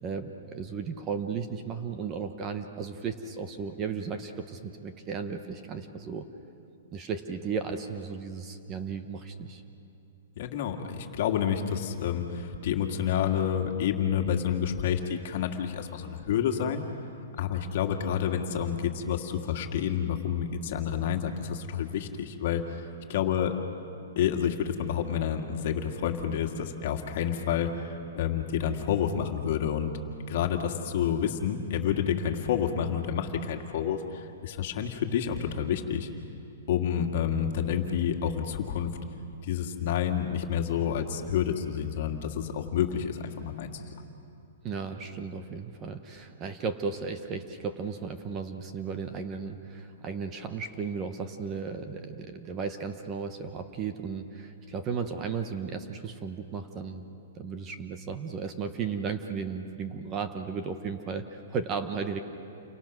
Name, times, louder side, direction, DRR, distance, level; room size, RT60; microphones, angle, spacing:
voice 1, 0.0-6.3 6.9-9.6 44.6-57.0 57.4-62.2, right 5 dB, 20° right, 7 dB, 1.0 m, -35 dB
voice 2, 10.4-16.9 17.4-23.5 24.2-29.9 30.3-36.1 36.7-38.9 39.4-43.7, left 8 dB, 50° left, 4 dB, 2.0 m, -29 dB
29.0 x 24.0 x 6.2 m, 2.6 s
hypercardioid pair, 165°, 0 cm